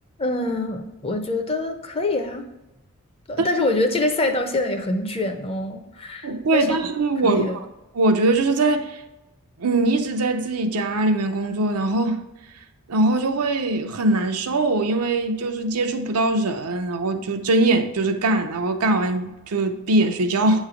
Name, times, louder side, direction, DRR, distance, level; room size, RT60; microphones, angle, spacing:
voice 1, 0.2-2.5 3.3-6.8 7.2-7.6, left 2 dB, 25° left, 0.6 m, -25 dB
voice 2, 6.2-7.6 7.9-9.0 9.6-12.2 12.9-20.6, right 2 dB, 85° right, 0.6 m, -22 dB
8.1 x 3.2 x 4.9 m
head